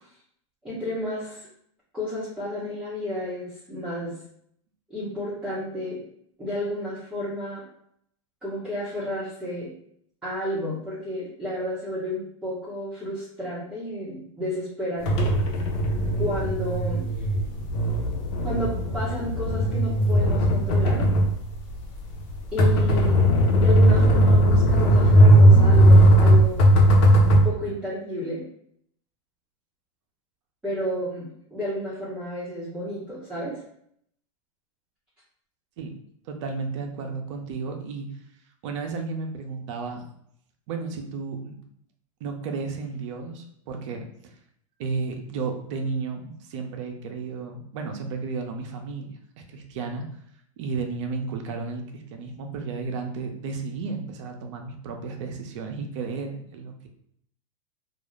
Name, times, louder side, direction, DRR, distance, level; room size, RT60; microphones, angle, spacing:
voice 1, 0.6-1.5 1.9-4.1 4.9-6.0 6.4-7.6 8.4-9.7 10.2-15.3 16.2-17.0 18.4-21.1 22.5-23.3 23.5-26.7 27.3-28.5 30.6-33.6, left 1 dB, 5° right, -11 dB, 0.9 m, -31 dB
sound 1, 15.1-27.4, right 1 dB, 55° left, 0.7 m, -18 dB
voice 2, 36.3-38.1 38.6-40.0 40.7-41.6 42.2-44.3 44.8-50.0 50.6-56.9, right 4 dB, 60° right, 4 dB, 0.6 m, -33 dB
2.3 x 2.0 x 3.1 m, 0.69 s
hypercardioid pair, 115°, 18 cm